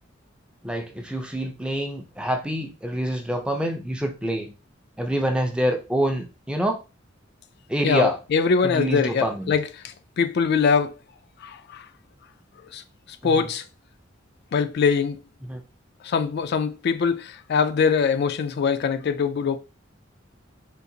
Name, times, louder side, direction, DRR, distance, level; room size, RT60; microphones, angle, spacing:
voice 1, 0.6-4.5 5.0-6.8 7.7-8.2 8.6-9.5 13.2-13.5 15.5-15.6, right 1 dB, 5° right, 0.4 m, -26 dB
voice 2, 7.8-10.9 11.4-11.9 12.7-12.8 13.2-13.6 14.5-15.2 16.0-19.6, left 5 dB, 55° left, 0.3 m, -23 dB
3.8 x 2.5 x 2.7 m
head